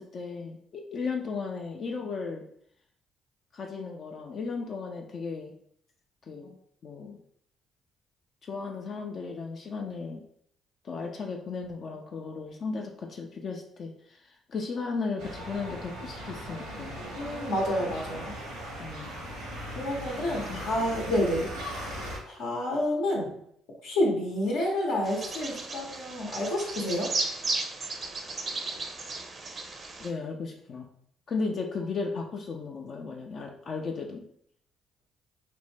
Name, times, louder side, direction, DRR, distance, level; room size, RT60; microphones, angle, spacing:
voice 1, 0.0-2.5 3.5-5.5 6.3-7.2 8.4-10.2 10.8-17.0 18.8-19.1 20.4-20.6 30.0-30.9 31.3-34.2, left 4 dB, 50° left, 2 dB, 0.4 m, -35 dB
sound 1, 15.2-22.2, equal, 80° right, 0.8 m, -38 dB
voice 2, 17.1-18.3 19.7-21.5 22.2-23.3 23.8-27.1, left 1 dB, 75° left, -3 dB, 0.8 m, -29 dB
Bird vocalization bird call bird song, 25.0-30.1, right 3 dB, 40° right, 0.5 m, -35 dB
2.5 x 2.1 x 3.2 m, 0.68 s
hypercardioid pair, 50°, 0 cm